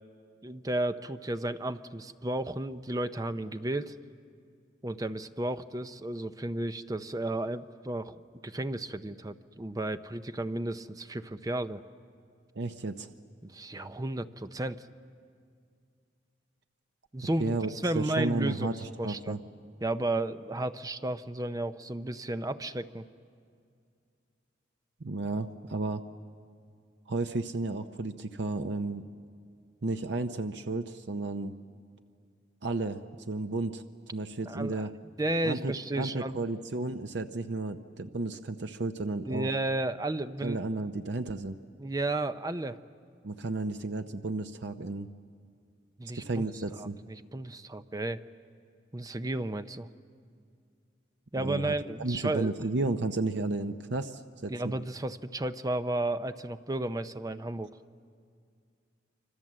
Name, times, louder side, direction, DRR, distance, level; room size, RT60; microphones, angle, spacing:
voice 1, 0.4-4.0 4.8-11.8 13.4-14.9 17.1-19.4 19.8-23.0 34.5-34.8 35.2-36.4 39.3-40.6 41.8-42.8 46.0-46.4 46.8-48.2 48.9-49.9 51.3-52.5 54.5-57.7, right 1 dB, 20° right, 10 dB, 0.6 m, -33 dB
voice 2, 12.6-13.1 17.4-17.7 17.9-19.4 25.0-26.0 27.1-29.0 29.8-31.5 32.6-33.8 34.1-34.9 35.4-39.5 40.4-41.6 43.2-45.1 46.1-47.0 51.4-51.7 52.0-54.7, right 2 dB, 65° right, 8 dB, 0.7 m, -33 dB
26.5 x 25.5 x 7.6 m, 2.3 s
head